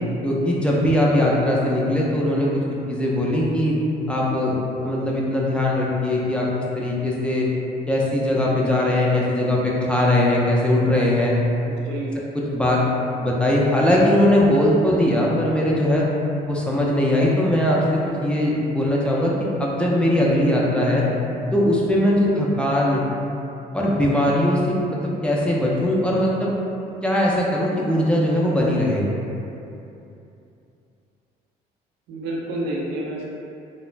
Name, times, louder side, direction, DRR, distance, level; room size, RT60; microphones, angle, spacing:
voice 1, 0.2-2.5 2.9-3.7 4.1-6.5 6.7-7.5 7.9-11.3 12.3-12.8 13.2-16.0 16.5-19.3 19.6-21.0 21.5-23.0 23.7-26.5 27.0-29.0, left 1 dB, 5° left, -5 dB, 0.4 m, -20 dB
voice 2, 11.7-12.2 32.1-33.3, right 1 dB, 90° right, -3 dB, 0.5 m, -29 dB
2.3 x 2.0 x 3.1 m, 2.8 s
cardioid pair, 110°, 17 cm